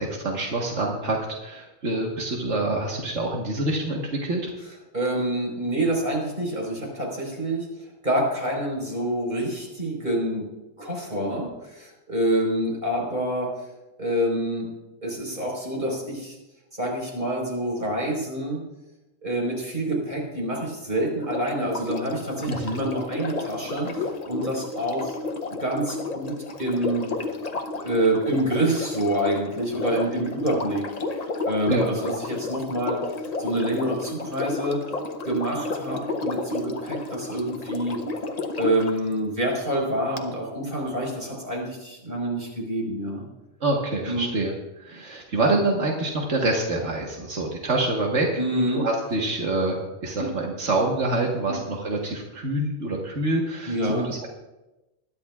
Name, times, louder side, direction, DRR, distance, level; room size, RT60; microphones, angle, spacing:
voice 1, 0.0-4.5 22.5-22.8 31.7-31.9 43.6-44.5 44.8-48.3 48.7-54.3, right 2 dB, 90° right, -1 dB, 1.7 m, -26 dB
voice 2, 4.9-7.7 8.0-10.5 10.8-13.5 14.0-14.7 15.0-16.4 16.8-18.6 19.2-25.2 25.5-26.3 26.6-27.1 27.8-30.8 31.2-33.0 33.4-34.8 35.2-38.0 38.6-43.2 44.1-44.3 48.4-48.8 51.5-51.6 53.7-54.1, right 1 dB, 45° right, -2 dB, 4.6 m, -27 dB
Sink (filling or washing), 21.2-39.0 40.2-40.3, left 3 dB, 40° left, 0.9 m, -32 dB
20.5 x 12.0 x 2.4 m, 1.0 s
omnidirectional pair, 1.2 m